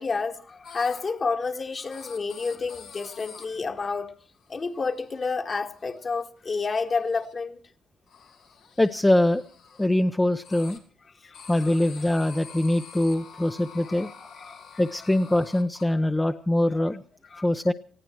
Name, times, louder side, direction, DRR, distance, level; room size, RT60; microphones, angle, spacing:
voice 1, 0.0-4.2 4.5-7.6 11.2-11.8 13.9-14.8 15.9-16.0 17.3-17.5, left 4 dB, 40° left, 1.8 m, -30 dB
sound 1, 0.6-1.0 1.9-3.4 4.3-4.6 4.9-5.3 5.7-6.2 6.5-7.3 8.1-9.9 10.4-10.8 11.3-15.8, left 6 dB, 85° left, 2.8 m, -47 dB
voice 2, 8.8-9.4 9.8-10.8 11.5-14.1 14.8-17.0 17.4-17.7, left 1 dB, 10° left, 0.7 m, -23 dB
20.0 x 15.0 x 4.6 m
cardioid pair, 90°, 0 cm